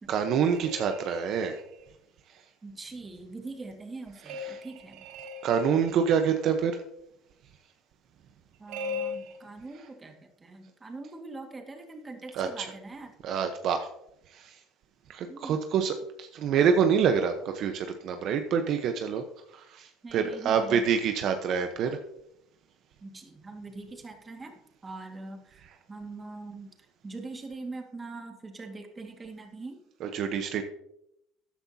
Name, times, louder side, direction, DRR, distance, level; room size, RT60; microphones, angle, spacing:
voice 1, 0.1-1.6 4.5-4.6 5.4-6.8 12.3-12.7 13.2-13.9 14.3-14.5 15.1-19.2 19.5-22.0 30.0-30.6, right 7 dB, 55° right, 6 dB, 1.0 m, -26 dB
sound 1, 0.5-1.9 4.3-6.4 8.7-9.4, left 3 dB, 85° right, 2.1 m, -39 dB
voice 2, 2.6-5.1 8.6-13.1 15.3-15.6 20.0-20.9 23.0-26.7 27.0-29.8, right 3 dB, 20° right, 4 dB, 1.9 m, -42 dB
13.5 x 10.0 x 2.8 m, 0.79 s
cardioid pair, 120°, 0 cm